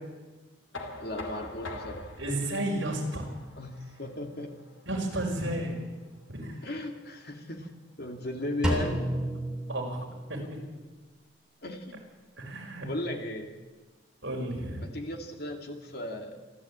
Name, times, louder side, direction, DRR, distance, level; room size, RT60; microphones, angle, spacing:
Knock, 0.7-6.5, left 2 dB, 80° left, 2.7 m, -45 dB
voice 1, 1.0-2.1 3.6-4.5 6.6-7.7 8.0-9.1 11.6-12.0 12.8-13.5 14.8-16.4, left 1 dB, 50° left, 4 dB, 2.6 m, -36 dB
voice 2, 2.2-3.3 4.9-5.8 6.3-6.6 9.7-10.6 12.4-12.9 14.2-14.9, right 1 dB, 65° right, -1 dB, 5.6 m, -32 dB
Drum, 8.6-10.6, equal, 5° right, 3.5 m, -31 dB
28.0 x 12.0 x 8.8 m, 1.3 s
head